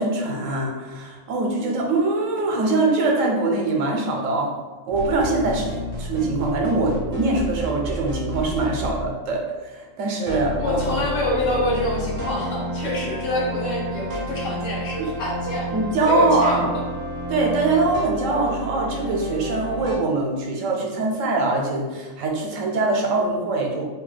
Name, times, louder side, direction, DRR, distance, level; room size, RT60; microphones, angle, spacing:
voice 1, 0.0-4.5 4.9-10.8 15.7-16.7 17.3-23.9, right 2 dB, 80° right, 0 dB, 1.0 m, -23 dB
sound 1, 4.9-9.1 10.3-20.0, equal, 50° right, 0.6 m, -31 dB
voice 2, 10.6-15.7 16.0-16.8 18.3-18.4, left 1 dB, 75° left, -3 dB, 1.2 m, -26 dB
2.8 x 2.2 x 3.2 m, 1.3 s
omnidirectional pair, 1.4 m